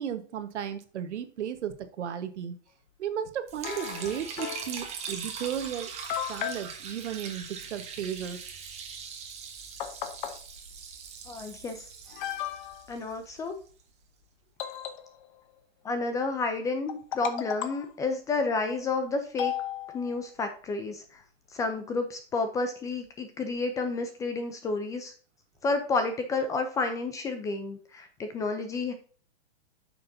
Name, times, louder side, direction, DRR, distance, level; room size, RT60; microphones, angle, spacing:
voice 1, 0.0-2.6 3.0-5.9 6.3-8.4, right 9 dB, 80° right, 10 dB, 1.3 m, -34 dB
Liquid, 3.5-13.7, right 6 dB, 20° right, 1.2 m, -41 dB
sound 1, 3.6-4.8 5.6-5.7 6.1-6.7 9.2-9.3 9.8-10.4 11.4-11.5 12.1-12.9 14.6-15.4 16.9-17.9 19.4-20.3, left 11 dB, 45° left, 0.9 m, -35 dB
voice 2, 11.3-11.8 12.9-13.5 15.8-19.5 19.9-21.2 21.5-25.1 25.6-28.9, left 3 dB, 10° left, 7 dB, 0.4 m, -30 dB
8.2 x 6.5 x 2.7 m, 0.41 s
hypercardioid pair, 150°, 34 cm